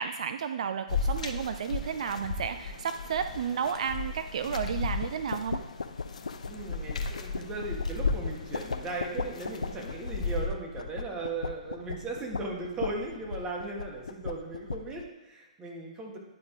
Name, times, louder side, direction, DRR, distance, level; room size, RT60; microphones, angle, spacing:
voice 1, 0.0-5.6, right 7 dB, 65° right, 10 dB, 0.3 m, -32 dB
sound 1, 0.9-10.5, left 4 dB, 70° left, 0.9 m, -35 dB
sound 2, 5.0-15.1, left 4 dB, 85° left, 0.4 m, -38 dB
voice 2, 6.5-16.2, right 3 dB, 20° right, 0 dB, 1.7 m, -37 dB
10.5 x 4.3 x 4.6 m, 1.1 s
hypercardioid pair, 125°, 4 cm